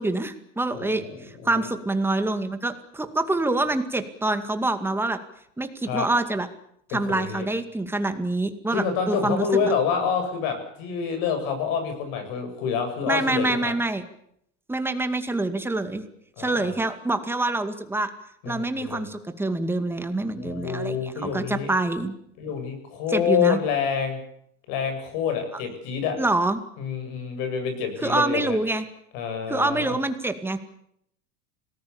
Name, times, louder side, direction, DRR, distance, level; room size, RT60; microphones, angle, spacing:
voice 1, 0.0-5.2 5.6-6.5 6.9-9.7 13.1-14.0 14.7-16.0 16.4-18.1 18.5-22.1 23.1-23.6 25.5-25.6 26.2-26.6 28.0-28.9 29.5-30.6, right 2 dB, 5° right, 8 dB, 2.2 m, -26 dB
voice 2, 0.7-1.7 5.8-6.1 6.9-7.5 8.7-13.7 16.4-16.7 18.4-19.0 20.3-21.7 22.4-24.2 24.7-26.2 26.8-28.6 29.1-30.0, left 7 dB, 60° left, 7 dB, 7.8 m, -27 dB
26.5 x 19.0 x 7.2 m, 0.71 s
supercardioid pair, 135°, 37 cm